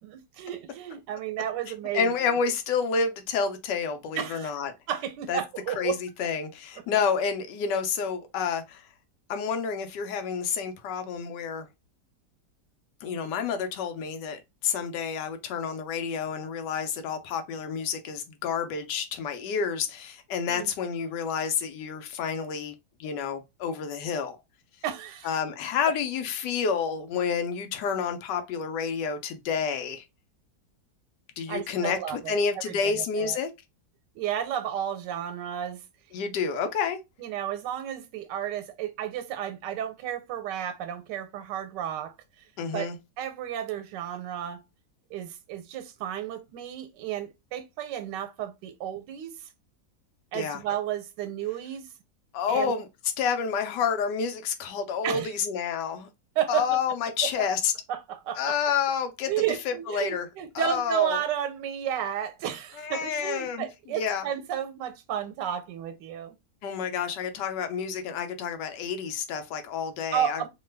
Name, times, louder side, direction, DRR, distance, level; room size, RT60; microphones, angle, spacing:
voice 1, 0.0-2.1 4.2-4.5 4.9-6.0 20.5-20.7 24.8-25.4 31.5-33.4 34.1-35.8 36.5-36.6 37.2-42.1 42.7-42.9 43.2-44.6 45.1-49.5 50.3-51.9 52.5-52.7 55.0-55.3 56.4-56.6 57.9-58.5 59.3-66.4 70.1-70.5, right 10 dB, 90° right, 1.2 m, -32 dB
voice 2, 1.9-4.7 5.3-5.4 5.8-8.8 9.3-11.7 13.0-22.7 23.0-24.4 25.2-30.0 31.4-33.5 36.1-37.0 42.6-43.0 50.3-50.6 52.3-52.9 53.2-56.1 56.5-57.7 58.4-59.3 59.7-60.3 60.5-61.2 62.8-64.3 66.6-70.5, left 6 dB, 85° left, 1.3 m, -29 dB
3.1 x 2.2 x 3.2 m
omnidirectional pair, 1.8 m